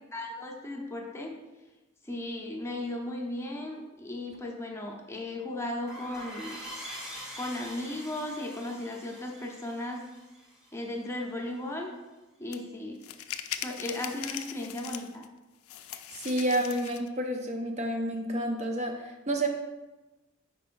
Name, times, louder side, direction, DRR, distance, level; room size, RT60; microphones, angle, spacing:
voice 1, 0.1-1.4 2.0-6.6 7.4-10.0 10.7-11.9 12.4-13.0 13.6-15.2, left 1 dB, 15° left, 0 dB, 0.8 m, -36 dB
sound 1, 5.9-11.2, equal, 5° right, 1.4 m, -44 dB
sound 2, 12.5-12.6 13.0-15.3 15.7-17.1, left 10 dB, 75° left, 0.4 m, -39 dB
voice 2, 16.1-19.5, right 1 dB, 30° right, 3 dB, 0.5 m, -30 dB
9.6 x 4.6 x 2.5 m, 1.1 s
head